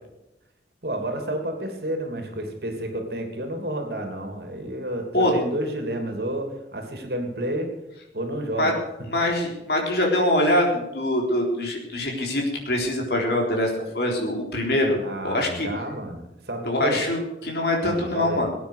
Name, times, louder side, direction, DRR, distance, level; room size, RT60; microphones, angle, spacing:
voice 1, 0.8-7.7 8.1-8.7 15.0-17.0 17.8-18.5, right 1 dB, 60° right, 4 dB, 2.9 m, -30 dB
voice 2, 9.1-15.7 16.7-18.5, left 1 dB, 65° left, 0 dB, 3.9 m, -24 dB
18.0 x 9.3 x 6.6 m, 0.95 s
head